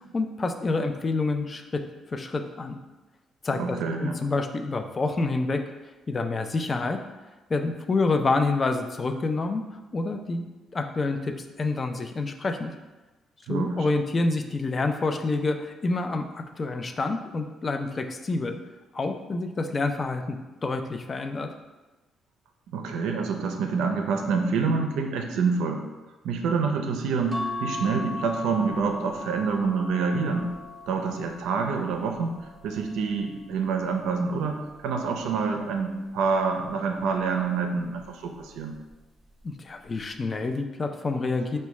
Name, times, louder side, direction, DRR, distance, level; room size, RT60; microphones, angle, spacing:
voice 1, 0.0-1.8 2.1-2.8 3.4-5.6 6.1-7.0 7.5-9.6 9.9-10.4 10.7-12.7 13.5-18.6 18.9-21.5 39.4-41.6, left 3 dB, 35° left, 6 dB, 0.3 m, -28 dB
voice 2, 3.5-4.2 13.5-13.9 22.7-25.8 26.2-30.5 30.9-38.8, right 5 dB, 90° right, 4 dB, 0.4 m, -27 dB
sound 1, 27.3-33.9 34.6-36.0 37.2-37.6 38.0-38.1, left 2 dB, 10° right, 0.7 m, -39 dB
4.5 x 2.2 x 3.0 m, 1.1 s
cardioid pair, 90°, 0 cm